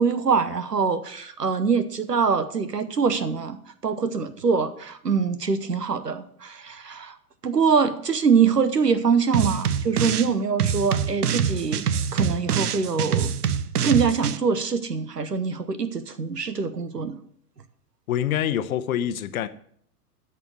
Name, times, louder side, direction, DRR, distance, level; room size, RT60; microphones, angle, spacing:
voice 1, 0.0-3.6 3.8-7.2 7.4-13.3 13.8-17.2, right 5 dB, 90° right, 1.0 m, -24 dB
sound 1, 9.3-10.3 10.6-14.4, right 8 dB, 70° right, 0.7 m, -25 dB
voice 2, 18.1-19.5, left 10 dB, 60° left, 0.9 m, -25 dB
13.0 x 4.5 x 6.2 m
figure-of-eight pair, 100°, 47 cm